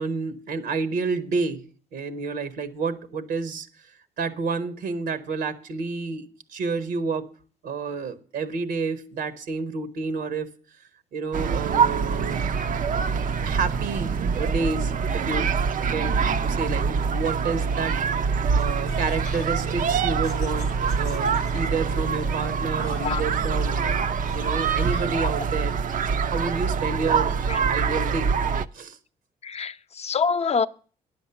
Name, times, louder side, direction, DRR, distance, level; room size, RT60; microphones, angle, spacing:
voice 1, 0.0-1.7 1.9-3.7 4.2-7.3 7.6-10.5 11.1-12.4 12.9-13.1 13.4-15.5 15.9-20.7 21.0-24.1 24.3-25.7 26.2-27.4 27.7-28.4 28.7-29.0, right 4 dB, 80° right, 1.1 m, -30 dB
sound 1, 11.3-28.7, right 6 dB, 50° right, 0.5 m, -25 dB
Laughter, 18.6-25.4, left 9 dB, 85° left, 0.7 m, -43 dB
voice 2, 29.4-30.7, left 5 dB, 40° left, 0.7 m, -25 dB
10.0 x 7.2 x 6.9 m
hypercardioid pair, 50°, 17 cm